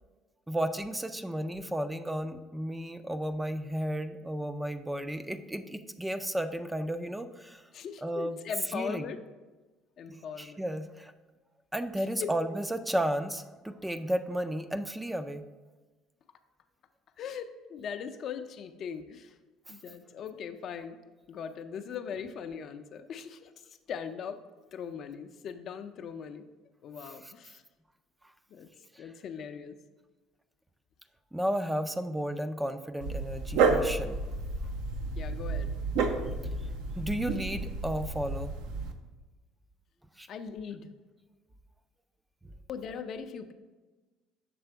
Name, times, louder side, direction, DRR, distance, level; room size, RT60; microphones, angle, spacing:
voice 1, 0.5-7.6 8.0-8.4 8.7-9.0 10.1-11.1 11.7-15.5 27.2-27.3 28.9-29.0 31.3-34.2 37.0-38.5 40.2-40.3, right 1 dB, 10° right, 9 dB, 0.3 m, -33 dB
voice 2, 7.7-9.2 10.0-10.6 12.0-12.3 17.2-19.3 19.7-21.0 21.3-23.5 23.9-24.4 24.7-26.5 26.8-27.6 28.5-28.7 29.0-29.8 35.2-35.7 40.3-40.9 42.7-43.5, left 7 dB, 55° left, 8 dB, 0.4 m, -40 dB
Dog, 33.0-38.9, right 4 dB, 80° right, 0.6 m, -31 dB
6.8 x 3.4 x 4.5 m, 1.2 s
supercardioid pair, 95°, 0 cm